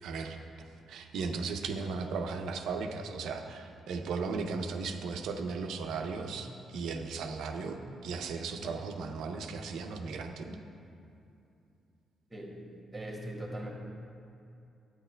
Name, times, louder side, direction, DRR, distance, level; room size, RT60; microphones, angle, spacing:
voice 1, 0.0-0.4 0.9-10.6, right 4 dB, 85° right, 4 dB, 0.6 m, -36 dB
voice 2, 12.3-12.6 12.9-13.7, right 1 dB, 10° right, -2 dB, 1.2 m, -40 dB
10.5 x 8.9 x 2.2 m, 2.6 s
cardioid pair, 135°, 0 cm